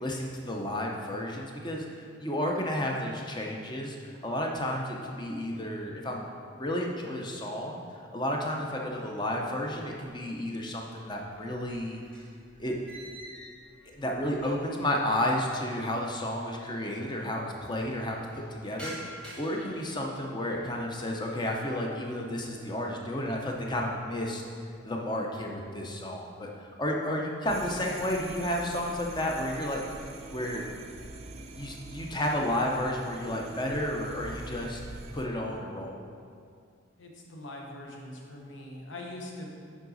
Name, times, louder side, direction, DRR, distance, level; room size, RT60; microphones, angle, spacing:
voice 1, 0.0-4.0 4.2-7.8 8.1-12.0 12.6-12.8 13.9-24.4 24.8-30.6 31.5-36.0, left 1 dB, 20° left, 0 dB, 0.7 m, -32 dB
sound 1, 9.6-10.5 10.8-14.9 15.2-15.3 16.1-16.2 16.4-16.5 16.8-17.3 17.7-20.9 21.3-21.8 22.3-22.7 23.1-24.0, right 1 dB, 5° left, 1.2 m, -49 dB
sound 2, 27.5-35.3, right 2 dB, 30° right, 0.4 m, -44 dB
voice 2, 37.0-39.5, left 1 dB, 70° left, -1 dB, 1.0 m, -42 dB
7.3 x 4.9 x 4.0 m, 2.2 s
head